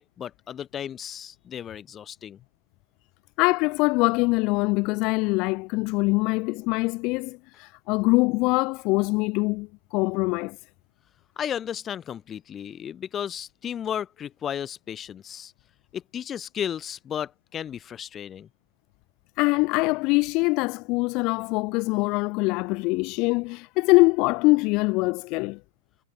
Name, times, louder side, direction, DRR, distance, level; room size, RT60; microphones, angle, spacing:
voice 1, 0.0-2.4 11.4-15.5 15.9-18.5, left 9 dB, 25° left, 7.1 m, -34 dB
voice 2, 3.4-10.6 19.4-25.6, left 25 dB, 45° left, 4.4 m, -23 dB
hypercardioid pair, 120°, 0 cm